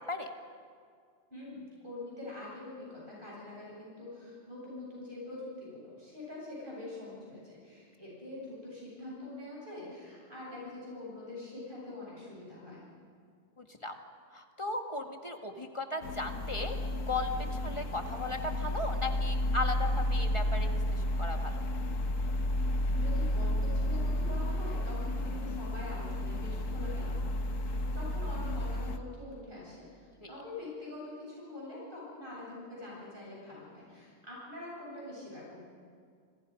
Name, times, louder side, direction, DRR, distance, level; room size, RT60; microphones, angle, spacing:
voice 1, 1.3-12.8 22.6-35.6, left 2 dB, 40° right, -6 dB, 8.4 m, -45 dB
voice 2, 13.6-13.9 14.3-16.8 17.1-17.3 17.6-21.6 30.2-30.3, left 2 dB, 25° left, 4 dB, 1.8 m, -36 dB
sound 1, 16.0-29.0, left 1 dB, 85° left, 1.6 m, -32 dB
28.0 x 26.5 x 5.2 m, 2.2 s
omnidirectional pair, 1.3 m